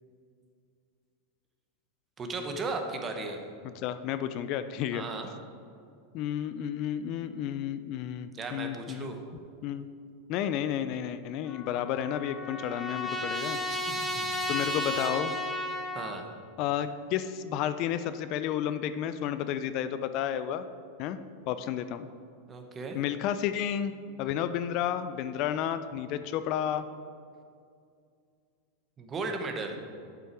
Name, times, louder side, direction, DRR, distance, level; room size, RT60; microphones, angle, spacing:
voice 1, 2.2-3.4 4.9-5.3 8.3-9.2 13.7-14.5 15.9-16.2 22.5-23.0 29.0-29.8, right 3 dB, 25° right, 4 dB, 1.0 m, -36 dB
voice 2, 3.8-5.0 6.1-9.1 9.6-9.9 10.3-13.6 14.5-15.3 16.6-20.6 21.0-21.2 21.5-22.1 22.9-23.9 24.2-26.8, left 10 dB, 50° left, 11 dB, 0.4 m, -31 dB
Trumpet, 11.5-16.2, left 1 dB, ahead, 1.1 m, -33 dB
7.6 x 5.8 x 4.6 m, 2.3 s
hypercardioid pair, 110°, 0 cm